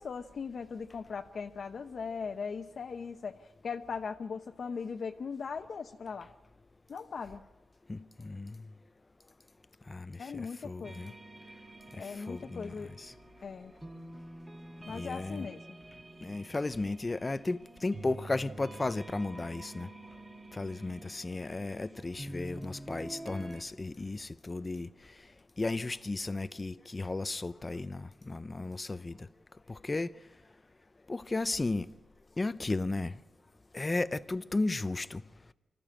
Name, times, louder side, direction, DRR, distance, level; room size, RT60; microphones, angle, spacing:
voice 1, 0.0-6.3 6.9-7.4 10.2-11.1 12.0-12.9 13.4-13.7 14.9-15.6, left 5 dB, 55° left, 0.9 m, -39 dB
voice 2, 7.9-8.6 9.9-11.1 12.0-13.1 14.9-15.5 16.2-19.9 20.5-24.9 25.6-29.2 29.7-30.1 31.1-31.9 32.4-33.1 33.7-35.2, left 2 dB, 25° left, 0.6 m, -34 dB
sound 1, 10.8-23.6, right 1 dB, 20° right, 2.0 m, -48 dB
25.0 x 14.0 x 8.8 m
cardioid pair, 90°, 0 cm